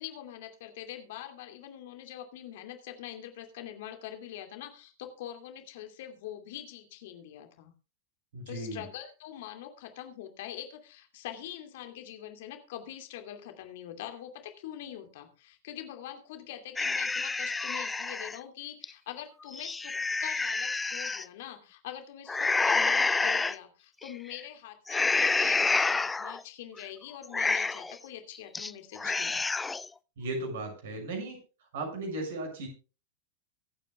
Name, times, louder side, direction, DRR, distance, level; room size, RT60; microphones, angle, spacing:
voice 1, 0.0-7.7 8.5-29.4, left 11 dB, 55° left, 6 dB, 2.5 m, -44 dB
voice 2, 8.3-8.8 30.2-31.4 31.7-32.7, right 2 dB, 60° right, 3 dB, 6.8 m, -36 dB
sound 1, 16.8-18.4 18.8-18.9 19.4-21.2 22.3-23.6 24.0-24.4 24.9-26.4 26.8-26.9 27.2-28.0 28.3-28.7 29.0-29.9, left 4 dB, 10° left, 0.5 m, -28 dB
24.0 x 9.0 x 2.3 m, 0.33 s
figure-of-eight pair, 90°, 0 cm